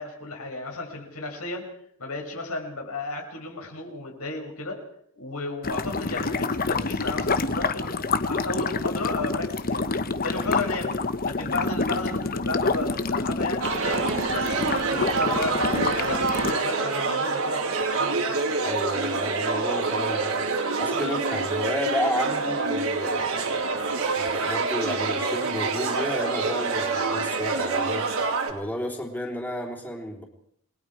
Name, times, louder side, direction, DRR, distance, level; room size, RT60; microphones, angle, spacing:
voice 1, 0.0-1.7 2.0-4.8 5.1-9.8 10.2-10.9 11.2-18.4 28.5-28.6, left 2 dB, 85° left, 2 dB, 6.4 m, -33 dB
sound 1, 5.6-16.5, left 3 dB, 45° left, 1.1 m, -27 dB
sound 2, 13.6-28.5, right 4 dB, 75° right, 4.0 m, -26 dB
voice 2, 18.6-20.5 20.8-30.2, left 1 dB, 10° left, 0 dB, 3.4 m, -32 dB
29.5 x 20.5 x 4.9 m, 0.67 s
head